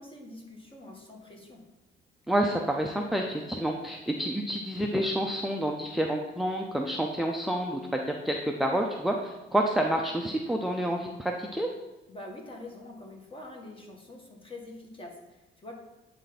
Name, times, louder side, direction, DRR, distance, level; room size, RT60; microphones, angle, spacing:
voice 1, 0.0-1.6 12.1-15.7, left 2 dB, 25° left, 0 dB, 1.6 m, -45 dB
voice 2, 2.3-11.7, right 1 dB, ahead, 1 dB, 0.5 m, -29 dB
8.9 x 3.4 x 4.1 m, 1.0 s
cardioid pair, 90°, 20 cm